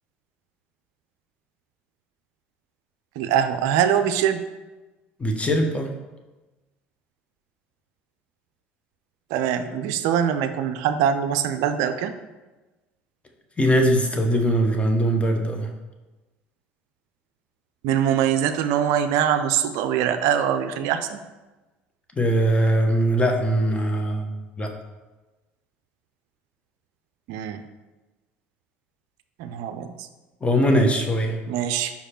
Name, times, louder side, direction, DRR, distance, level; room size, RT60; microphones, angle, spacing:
voice 1, 3.2-4.4 9.3-12.1 17.8-21.2 27.3-27.6 29.4-29.9 31.5-31.9, right 9 dB, 65° right, 9 dB, 0.4 m, -23 dB
voice 2, 5.2-5.9 13.6-15.7 22.2-24.7 30.4-31.4, equal, 20° left, 3 dB, 1.1 m, -21 dB
5.5 x 4.9 x 4.4 m, 1.2 s
hypercardioid pair, 65°, 6 cm